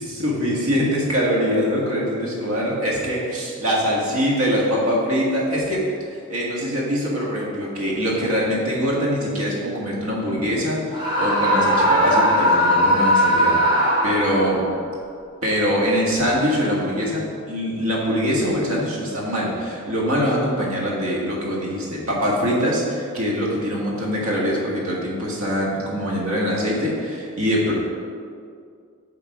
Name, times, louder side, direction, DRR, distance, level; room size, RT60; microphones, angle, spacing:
voice 1, 0.0-14.7 15.4-27.7, equal, 75° right, -4 dB, 1.6 m, -23 dB
Screaming, 10.9-14.6, equal, 20° right, 1.1 m, -19 dB
7.5 x 3.8 x 4.8 m, 2.2 s
head